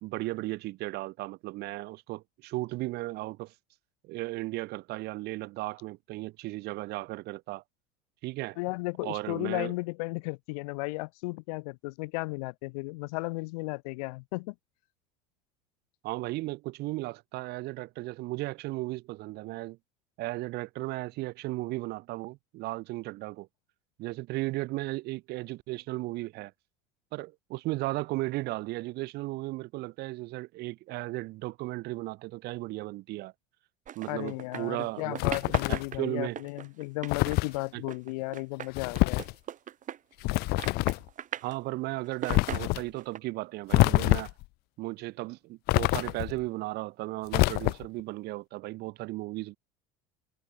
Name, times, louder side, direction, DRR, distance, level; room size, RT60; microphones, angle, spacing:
voice 1, 0.0-3.5 4.0-7.6 8.2-8.6 9.0-9.7 16.0-19.8 20.2-23.5 24.0-26.5 27.1-33.3 33.9-35.4 35.7-36.4 37.7-37.8 41.4-44.3 44.8-49.6, right 20 dB, 55° right, 1.0 m, -35 dB
voice 2, 8.6-14.5 34.1-39.2, left 26 dB, 70° left, 1.2 m, -34 dB
sound 1, 33.9-34.9 35.1-40.3 40.6-41.6 42.0-43.2, right 10 dB, 40° right, 2.9 m, -40 dB
sound 2, 35.2-36.0 37.1-37.6 38.7-39.3 40.2-41.1 42.3-42.8 43.7-44.4 45.7-46.4 47.3-48.0, left 23 dB, 55° left, 0.4 m, -26 dB
hypercardioid pair, 85°, 20 cm